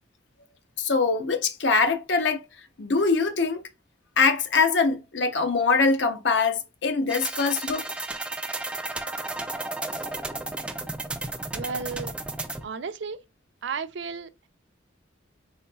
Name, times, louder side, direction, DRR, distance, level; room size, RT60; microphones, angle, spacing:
voice 1, 0.8-2.5 2.8-3.6 4.2-7.8, left 4 dB, 70° left, 0.7 m, -23 dB
sound 1, 7.1-12.7, right 2 dB, 5° right, 0.3 m, -33 dB
voice 2, 11.5-12.1 12.6-13.2 13.6-14.5, right 5 dB, 65° right, 0.4 m, -33 dB
4.1 x 3.9 x 2.3 m
head